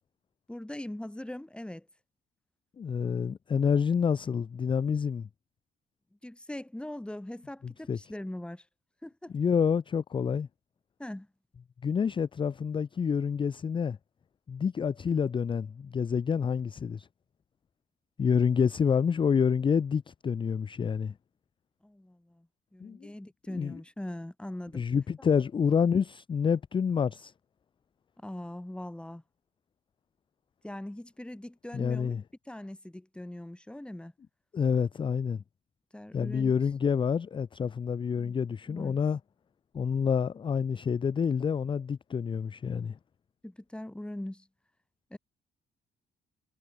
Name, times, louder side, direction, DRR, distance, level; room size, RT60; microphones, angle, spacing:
voice 1, 0.5-1.9 6.2-8.7 9.0-9.3 11.0-11.3 21.8-24.8 28.2-29.2 30.6-32.2 32.4-34.1 35.9-36.5 38.7-39.0 43.4-44.5 45.1-45.2, left 1 dB, 5° left, 0.9 m, -41 dB
voice 2, 2.8-5.3 7.9-8.0 9.3-10.5 11.8-14.0 14.5-17.1 18.2-21.1 22.8-23.0 23.5-23.8 24.7-27.3 31.7-32.2 34.5-35.4 36.1-39.2 39.7-43.0, left 6 dB, 25° left, 0.3 m, -28 dB
cardioid pair, 90°, 20 cm